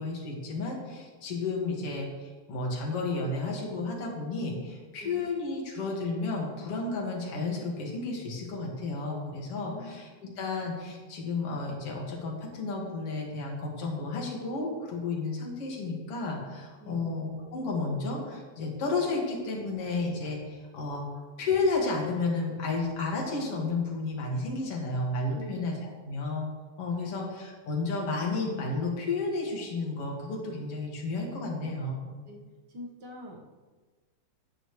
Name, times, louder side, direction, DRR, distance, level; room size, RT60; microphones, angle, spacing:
voice 1, 0.0-10.1 10.4-21.0 21.4-26.5 26.8-32.2, left 3 dB, 55° left, -1 dB, 2.9 m, -32 dB
voice 2, 9.6-10.3 16.8-17.2 25.3-25.7 26.9-27.3 32.3-32.4 32.7-33.4, left 1 dB, 45° right, 0 dB, 1.6 m, -45 dB
13.5 x 9.3 x 3.2 m, 1.4 s
omnidirectional pair, 3.3 m